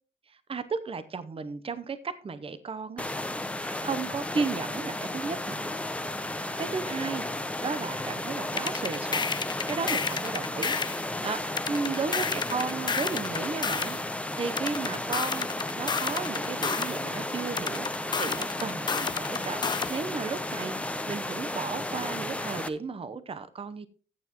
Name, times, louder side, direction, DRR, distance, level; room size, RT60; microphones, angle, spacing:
voice 1, 0.3-3.0 3.8-5.6 6.6-7.3 7.6-14.0 14.3-15.5 15.8-17.9 18.1-23.9, right 5 dB, 30° right, 0.8 m, -34 dB
sound 1, 3.0-22.7, left 1 dB, 5° left, 0.7 m, -33 dB
sound 2, 8.6-11.0 11.6-14.0 14.6-17.0 17.6-20.0, left 5 dB, 25° left, 0.3 m, -31 dB
14.0 x 7.2 x 3.0 m
cardioid pair, 90°, 20 cm